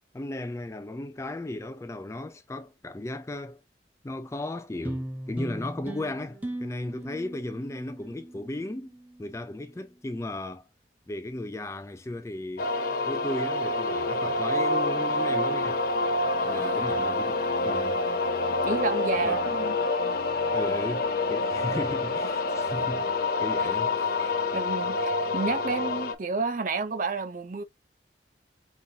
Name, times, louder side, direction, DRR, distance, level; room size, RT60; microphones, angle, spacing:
voice 1, 0.1-3.6 4.0-10.7 11.1-12.7 13.1-15.8 16.4-18.0 19.2-19.4 20.5-21.0 21.3-23.1 23.4-24.2, left 1 dB, 15° left, 0.3 m, -36 dB
sound 1, 4.8-9.5, right 1 dB, 10° right, 0.7 m, -38 dB
sound 2, 12.6-26.1, left 2 dB, 55° left, 0.6 m, -27 dB
voice 2, 16.4-16.8 18.6-19.8 24.2-27.6, right 4 dB, 45° right, 0.5 m, -31 dB
5.4 x 2.3 x 2.7 m
head